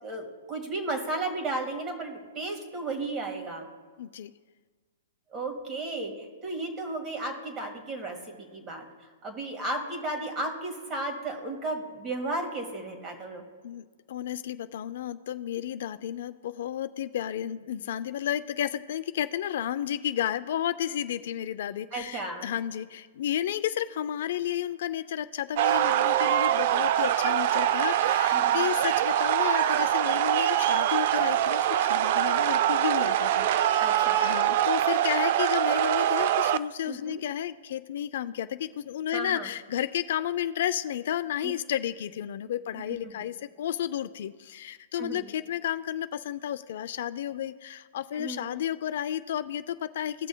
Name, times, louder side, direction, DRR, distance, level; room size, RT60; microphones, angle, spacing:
voice 1, 0.0-3.6 5.3-8.9 9.2-13.4 21.9-22.5 28.3-28.7 33.8-34.4 36.9-37.2 39.1-39.5 41.4-41.5 45.0-45.2 48.1-48.5, right 2 dB, 25° right, 4 dB, 1.7 m, -34 dB
voice 2, 4.0-4.3 13.6-33.5 33.8-50.3, left 11 dB, 60° left, 12 dB, 0.4 m, -32 dB
sound 1, 25.6-36.6, right 12 dB, 50° right, 0.3 m, -24 dB
17.0 x 6.1 x 2.2 m, 1.5 s
hypercardioid pair, 140°, 0 cm